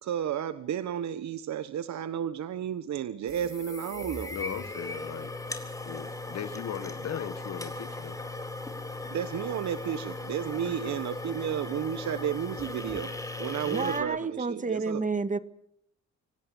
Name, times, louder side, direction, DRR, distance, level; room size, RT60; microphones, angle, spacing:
voice 1, 0.0-4.4 9.1-13.1 13.4-15.1, right 9 dB, 65° right, 1.2 m, -32 dB
sound 1, 3.3-14.0, left 2 dB, 10° left, 4.0 m, -38 dB
voice 2, 4.3-5.3 5.8-8.2 10.8-11.0, left 9 dB, 60° left, 1.6 m, -38 dB
voice 3, 13.7-15.4, right 4 dB, 25° right, 1.9 m, -30 dB
25.0 x 18.0 x 7.2 m
cardioid pair, 90°, 30 cm